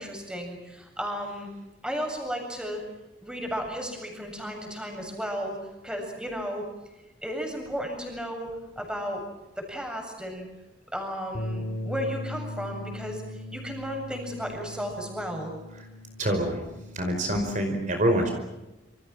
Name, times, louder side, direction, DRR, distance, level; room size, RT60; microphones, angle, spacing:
voice 1, 0.0-1.5 1.8-2.8 3.2-5.6 5.8-6.6 7.2-8.5 8.8-9.2 9.6-10.5 10.9-15.5, equal, 5° right, 2 dB, 7.6 m, -34 dB
Bass guitar, 11.3-17.6, left 1 dB, 60° left, 3.7 m, -38 dB
voice 2, 16.2-16.6 16.9-18.3, right 1 dB, 45° right, 4 dB, 5.1 m, -25 dB
28.5 x 27.0 x 6.2 m, 1.0 s
head